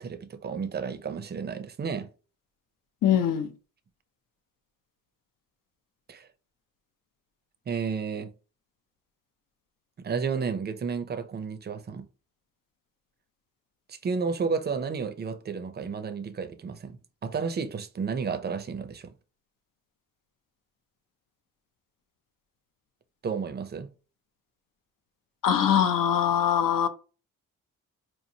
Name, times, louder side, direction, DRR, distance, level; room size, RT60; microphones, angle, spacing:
voice 1, 0.0-2.1 6.1-6.3 7.7-8.3 10.0-12.1 13.9-19.1 23.2-23.9, right 5 dB, 30° right, 0.4 m, -32 dB
voice 2, 3.0-3.5 25.4-26.9, left 9 dB, 80° left, 0.6 m, -22 dB
4.6 x 2.9 x 2.7 m
wide cardioid pair, 170°, 33 cm